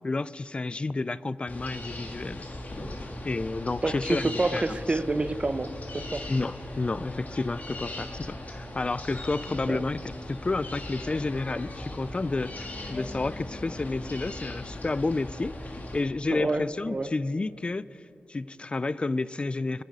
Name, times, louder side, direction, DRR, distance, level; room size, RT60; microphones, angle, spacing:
voice 1, 0.0-2.5 3.2-5.0 6.3-18.0 18.3-19.8, left 3 dB, 30° left, 18 dB, 0.3 m, -31 dB
sound 1, 1.5-16.0, left 1 dB, 45° left, 1.8 m, -39 dB
voice 2, 3.8-6.3 9.7-9.8 16.3-17.1, right 2 dB, 30° right, 12 dB, 0.6 m, -28 dB
24.5 x 10.0 x 5.3 m, 2.8 s
wide cardioid pair, 115°, 4 cm